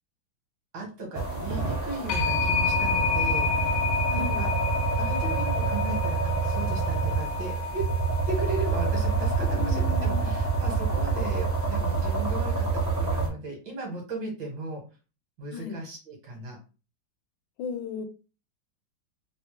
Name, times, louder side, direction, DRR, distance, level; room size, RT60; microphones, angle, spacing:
voice 1, 0.7-3.8 4.1-4.5 5.0-7.9 8.3-14.8 15.4-16.6, right 3 dB, 75° right, 0 dB, 2.1 m, -36 dB
sound 1, 1.1-13.3, right 4 dB, 20° right, 0.5 m, -27 dB
sound 2, 2.1-12.7, left 6 dB, 70° left, 0.8 m, -31 dB
voice 2, 4.1-4.5 9.5-10.3 15.5-15.8 17.6-18.0, left 5 dB, 85° left, 8 dB, 1.3 m, -35 dB
4.0 x 2.1 x 3.0 m, 0.33 s
omnidirectional pair, 2.1 m